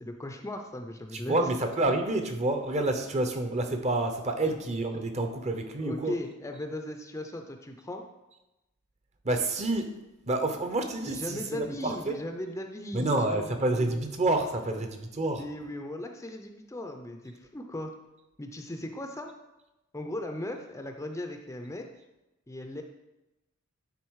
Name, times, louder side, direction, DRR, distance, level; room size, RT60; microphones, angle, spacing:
voice 1, 0.0-1.5 4.5-4.6 5.8-8.0 11.1-13.5 15.3-17.9 18.4-19.3 19.9-21.9 22.5-22.8, left 1 dB, 15° left, 4 dB, 0.5 m, -37 dB
voice 2, 1.1-6.1 9.2-9.9 10.3-12.2 12.9-15.4, right 2 dB, 30° right, 6 dB, 0.7 m, -28 dB
9.6 x 3.9 x 4.7 m, 0.98 s
head